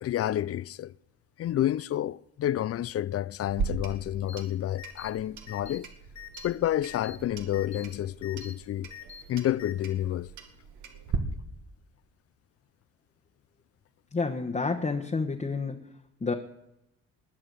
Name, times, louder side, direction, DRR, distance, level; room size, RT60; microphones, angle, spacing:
voice 1, 0.0-0.9 1.4-5.9 6.4-8.9 9.3-10.3, left 12 dB, 50° left, 0.5 m, -29 dB
Clock, 3.4-11.2, right 6 dB, 75° right, 2.0 m, -39 dB
sound 1, 4.3-4.4 4.8-5.1 5.5-5.8 6.2-6.5 6.8-7.2 7.5-7.9 8.2-8.5 8.9-9.2 9.6-9.7, left 9 dB, 70° left, 2.7 m, -44 dB
voice 2, 14.1-15.8 16.2-16.3, left 4 dB, 25° left, 1.2 m, -29 dB
20.5 x 7.7 x 6.7 m
cardioid pair, 90°, 30 cm